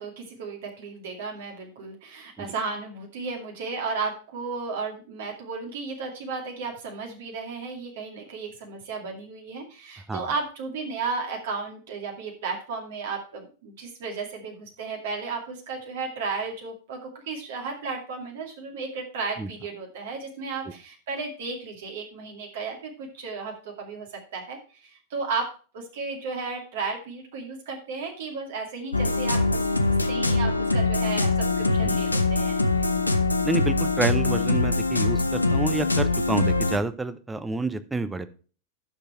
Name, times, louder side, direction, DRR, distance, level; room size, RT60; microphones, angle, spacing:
voice 1, 0.0-32.6, right 4 dB, 55° right, 1 dB, 2.4 m, -34 dB
sound 1, 28.9-36.8, left 3 dB, 85° left, 0.8 m, -23 dB
voice 2, 33.4-38.3, right 3 dB, 10° right, 12 dB, 0.8 m, -29 dB
11.5 x 6.7 x 4.4 m, 0.38 s
figure-of-eight pair, 90°, 0 cm